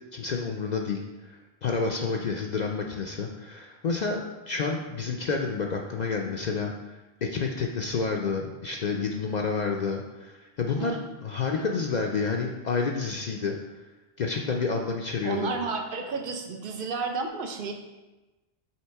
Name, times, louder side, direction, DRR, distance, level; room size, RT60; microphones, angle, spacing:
voice 1, 0.1-13.6 14.2-15.6, left 4 dB, 55° left, 1 dB, 0.5 m, -29 dB
voice 2, 15.2-17.7, right 4 dB, 60° right, 4 dB, 0.9 m, -32 dB
5.7 x 3.8 x 4.5 m, 1.1 s
omnidirectional pair, 1.0 m